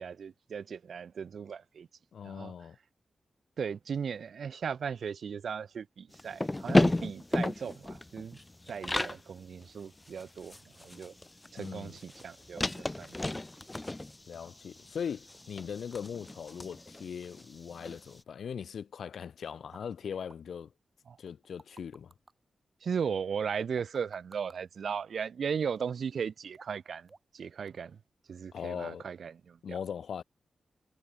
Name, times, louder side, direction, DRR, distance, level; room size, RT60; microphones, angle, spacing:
voice 1, 0.0-1.9 2.2-2.5 3.6-8.4 8.7-11.1 11.5-13.2 21.1-21.2 22.8-27.1 27.3-28.0 28.3-29.8, right 6 dB, 75° right, 0.3 m, -37 dB
voice 2, 2.1-2.8 11.6-12.0 14.3-20.7 21.2-22.1 28.5-29.0 29.6-30.2, left 7 dB, 80° left, 0.4 m, -40 dB
sound 1, 6.1-9.2 9.6-9.7 10.0-18.0, left 2 dB, 20° left, 0.5 m, -33 dB
sound 2, 19.7-19.8 20.3-20.4 21.3-22.3 23.6-24.6 25.8-26.1 26.5-26.8 27.1-27.4 27.7-27.8, right 3 dB, 35° right, 2.1 m, -55 dB
wide cardioid pair, 95°, 0 cm